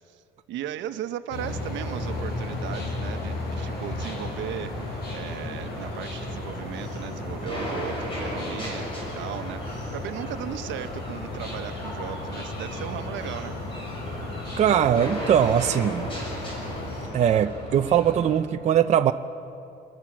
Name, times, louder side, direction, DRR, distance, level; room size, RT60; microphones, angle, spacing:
voice 1, 0.1-13.5, right 11 dB, 85° right, 1.1 m, -37 dB
sound 1, 1.3-17.1, left 2 dB, 60° left, 6.1 m, -35 dB
sound 2, 1.8-18.4, left 1 dB, 30° left, 6.8 m, -37 dB
voice 2, 14.6-16.1 17.1-19.1, right 9 dB, 35° right, 0.6 m, -21 dB
27.5 x 22.0 x 7.4 m
cardioid pair, 165°, 19 cm